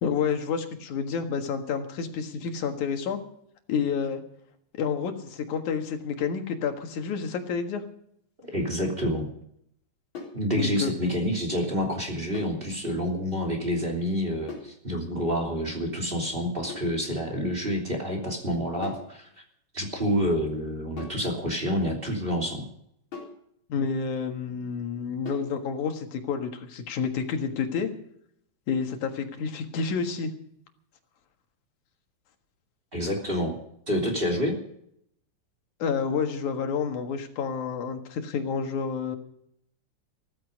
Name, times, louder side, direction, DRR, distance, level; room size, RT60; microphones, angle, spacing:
voice 1, 0.0-3.2 3.7-4.2 4.7-7.8 10.6-11.2 23.7-27.9 28.7-30.3 35.8-39.2, left 6 dB, 85° left, 5 dB, 3.1 m, -29 dB
voice 2, 8.4-9.3 10.3-19.3 19.7-22.6 32.9-33.6 33.9-34.5, equal, 20° right, 1 dB, 3.0 m, -28 dB
sound 1, 10.1-10.5 12.3-12.6 14.5-14.8 16.7-17.0 18.8-19.1 21.0-21.3 23.1-23.4 25.3-25.6, left 4 dB, 40° left, 4.6 m, -40 dB
15.5 x 15.0 x 5.3 m, 0.71 s
omnidirectional pair, 3.4 m